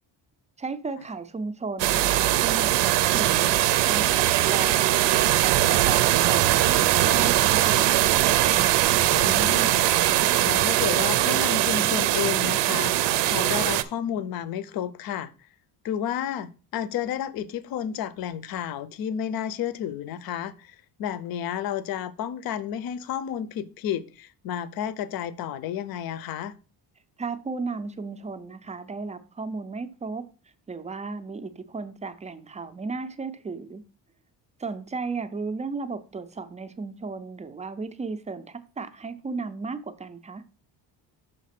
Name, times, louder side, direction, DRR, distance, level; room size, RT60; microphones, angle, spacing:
voice 1, 0.6-6.6 7.0-8.2 27.2-30.2 30.7-33.8 34.6-40.4, right 4 dB, 15° right, 0.4 m, -34 dB
sound 1, 1.8-13.8, right 14 dB, 90° right, 0.7 m, -21 dB
voice 2, 9.1-15.3 15.8-26.5, left 9 dB, 55° left, 0.6 m, -31 dB
6.5 x 4.0 x 5.8 m
cardioid pair, 165°, 42 cm